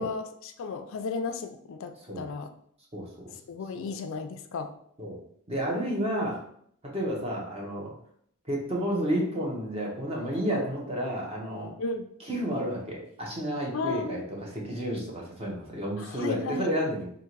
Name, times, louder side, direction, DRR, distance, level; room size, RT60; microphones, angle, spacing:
voice 1, 0.0-2.5 3.5-4.7 11.8-12.1 13.7-14.2 16.0-16.7, left 4 dB, 65° left, 8 dB, 0.4 m, -34 dB
voice 2, 2.9-3.3 3.7-3.9 5.0-5.2 5.5-6.4 6.8-7.9 8.5-11.7 12.2-17.1, equal, 30° right, -2 dB, 1.1 m, -31 dB
3.6 x 2.5 x 4.5 m, 0.65 s
head